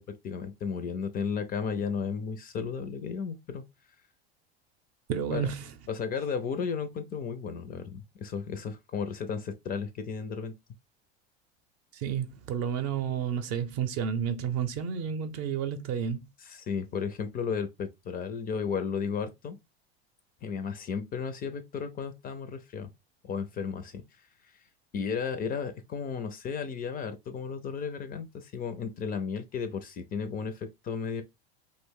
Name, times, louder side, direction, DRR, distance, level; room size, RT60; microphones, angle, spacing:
voice 1, 0.2-3.6 5.3-5.5 5.9-10.5 16.4-19.6 20.4-22.9 23.2-24.3 24.9-31.2, left 6 dB, 30° left, 0.4 m, -34 dB
voice 2, 5.1-5.7 11.9-16.2, right 8 dB, 50° right, 0.6 m, -31 dB
2.5 x 2.0 x 3.5 m
hypercardioid pair, 90°, 32 cm